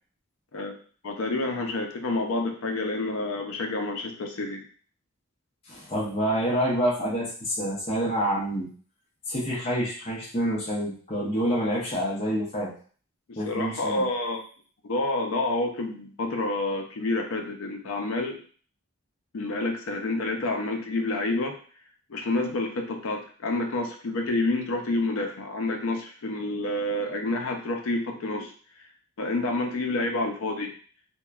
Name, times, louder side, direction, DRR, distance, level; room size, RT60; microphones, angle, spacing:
voice 1, 1.0-4.6 13.4-14.4 14.8-18.4 19.3-21.6 22.1-28.5 29.2-30.7, left 2 dB, 70° left, 3 dB, 0.5 m, -28 dB
voice 2, 5.7-8.7 9.3-12.7 13.4-14.0, equal, 25° left, -6 dB, 0.6 m, -27 dB
2.8 x 2.2 x 2.3 m, 0.43 s
head